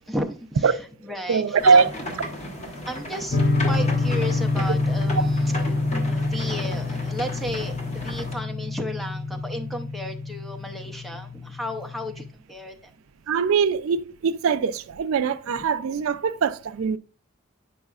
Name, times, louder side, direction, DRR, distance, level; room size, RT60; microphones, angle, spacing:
voice 1, 0.0-1.8 2.6-5.8 6.1-12.9, equal, ahead, 0.5 m, -34 dB
voice 2, 1.3-1.9 5.2-5.3 13.3-17.0, right 5 dB, 80° right, 0.4 m, -21 dB
sound 1, 1.6-8.3, left 1 dB, 30° left, 1.1 m, -34 dB
sound 2, 3.3-12.3, left 3 dB, 55° left, 0.8 m, -27 dB
8.4 x 5.4 x 2.4 m
head